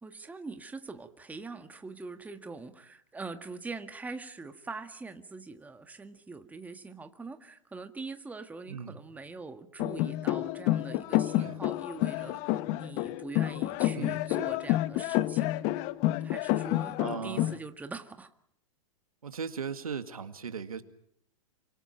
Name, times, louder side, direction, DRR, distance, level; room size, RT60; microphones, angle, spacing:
voice 1, 0.0-15.6 16.2-18.3, right 3 dB, 10° right, 7 dB, 1.7 m, -43 dB
voice 2, 8.7-9.0 11.4-11.6 13.9-14.3 17.0-17.5 19.2-20.8, right 6 dB, 85° right, 9 dB, 2.0 m, -38 dB
sound 1, 9.8-17.6, left 16 dB, 40° left, 1.0 m, -29 dB
29.0 x 25.5 x 4.5 m, 0.72 s
hypercardioid pair, 115°, 18 cm